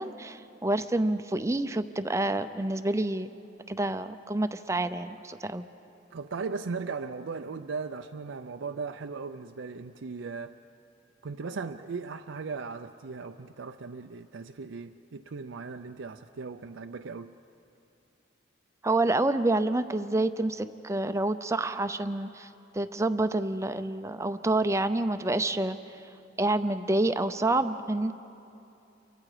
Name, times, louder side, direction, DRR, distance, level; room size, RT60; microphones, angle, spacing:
voice 1, 0.0-3.3 3.7-5.6 18.8-22.5 22.7-25.8 26.4-28.1, right 2 dB, 15° right, 10 dB, 0.6 m, -28 dB
voice 2, 6.1-10.5 11.2-17.4, right 4 dB, 90° right, 5 dB, 0.5 m, -37 dB
29.5 x 24.0 x 4.9 m, 2.8 s
head